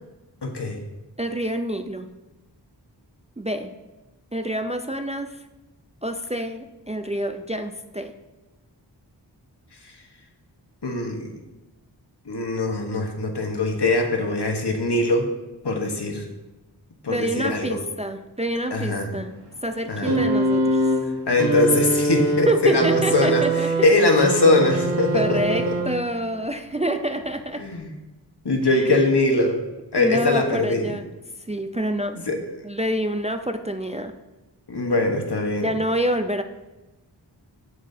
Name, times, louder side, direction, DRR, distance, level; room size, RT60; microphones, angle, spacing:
voice 1, 0.4-0.8 10.8-11.3 12.3-15.2 15.6-16.3 17.0-17.7 18.7-19.1 19.9-20.2 21.3-23.4 23.8-25.7 27.6-27.9 28.4-29.6 29.9-30.9 32.3-32.4 34.7-35.6, left 2 dB, 65° left, 3 dB, 1.2 m, -21 dB
voice 2, 1.2-2.1 3.4-3.7 4.3-5.4 6.0-8.1 17.1-19.3 19.6-20.9 22.5-23.9 25.1-27.6 28.6-29.0 30.0-31.1 31.5-32.2 32.6-34.1 35.6-36.4, right 1 dB, 15° right, 7 dB, 0.4 m, -27 dB
sound 1, 20.1-26.2 27.3-27.4, right 1 dB, 70° right, 1.5 m, -23 dB
8.3 x 7.5 x 2.7 m, 1.1 s
wide cardioid pair, 50°, 42 cm